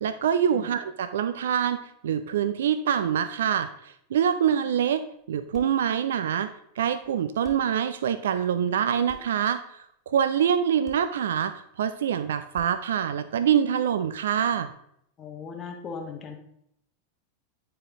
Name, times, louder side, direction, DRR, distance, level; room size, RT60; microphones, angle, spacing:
voice 1, 0.0-6.5 6.8-9.6 10.1-14.7, right 8 dB, 60° right, 12 dB, 0.3 m, -25 dB
sound 1, 5.3-5.9 7.0-7.1 7.4-7.8 9.0-9.4 10.8-11.1 12.5-12.9, left 2 dB, 5° left, 2.0 m, -48 dB
voice 2, 15.2-16.4, left 5 dB, 25° left, 2 dB, 1.1 m, -38 dB
9.2 x 4.7 x 3.6 m, 0.74 s
figure-of-eight pair, 90°, 0 cm